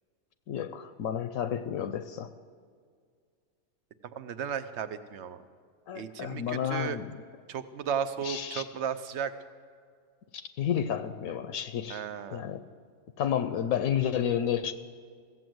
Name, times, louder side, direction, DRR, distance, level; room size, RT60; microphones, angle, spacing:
voice 1, 0.5-2.3 5.9-7.1 8.2-8.6 10.3-12.1 12.3-12.6 13.2-14.7, left 9 dB, 80° left, 11 dB, 1.0 m, -31 dB
voice 2, 4.2-5.4 5.9-7.0 7.5-9.3 11.9-12.4, right 7 dB, 65° right, 11 dB, 0.9 m, -34 dB
15.5 x 7.6 x 7.8 m, 2.1 s
omnidirectional pair, 1.4 m